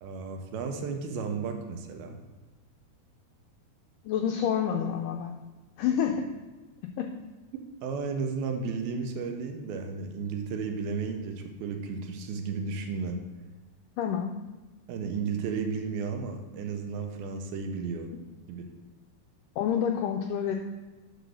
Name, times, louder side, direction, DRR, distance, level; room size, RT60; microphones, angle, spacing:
voice 1, 0.0-2.2 7.8-13.2 14.9-18.1 18.5-18.6, right 5 dB, 85° right, 4 dB, 2.7 m, -33 dB
voice 2, 4.1-5.3 5.8-6.1 7.0-7.1 14.0-14.3 19.6-20.5, left 8 dB, 85° left, 4 dB, 1.9 m, -28 dB
9.4 x 4.0 x 6.3 m, 1.2 s
omnidirectional pair, 4.3 m